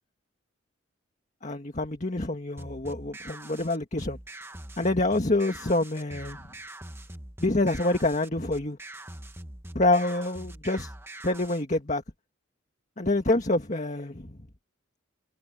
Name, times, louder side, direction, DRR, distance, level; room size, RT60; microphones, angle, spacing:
voice 1, 1.4-4.2 4.8-6.4 7.4-8.8 9.8-10.9 11.2-12.0 13.0-14.4, left 2 dB, 35° left, 1.8 m, -26 dB
sound 1, 2.6-11.6, right 1 dB, 10° right, 1.5 m, -43 dB
head